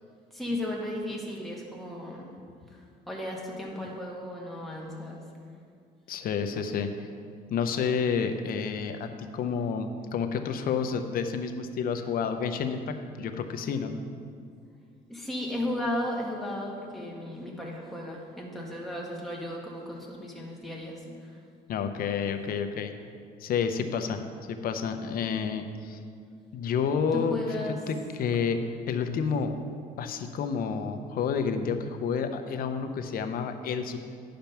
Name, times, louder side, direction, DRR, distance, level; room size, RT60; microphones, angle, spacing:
voice 1, 0.3-2.3 2.7-5.2 14.3-14.4 15.1-21.4 27.1-27.8, left 1 dB, ahead, -3 dB, 1.7 m, -35 dB
voice 2, 6.1-6.9 7.5-13.9 21.7-22.9 23.4-24.2 24.5-26.0 26.5-27.4 27.9-28.6 28.9-29.5 30.0-34.0, left 6 dB, 60° left, 7 dB, 0.8 m, -29 dB
10.5 x 5.2 x 5.9 m, 2.2 s
cardioid pair, 110°, 17 cm